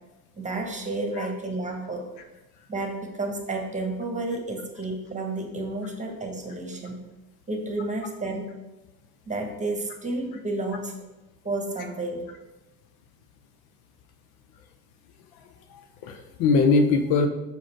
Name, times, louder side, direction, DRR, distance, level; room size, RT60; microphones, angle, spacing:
voice 1, 0.4-2.1 2.7-7.0 7.5-8.5 9.3-10.9 11.4-12.2, right 2 dB, 15° right, 2 dB, 1.4 m, -31 dB
voice 2, 15.3-17.3, left 4 dB, 60° left, 6 dB, 0.7 m, -23 dB
5.0 x 4.9 x 4.5 m, 1.1 s
hypercardioid pair, 70°, 43 cm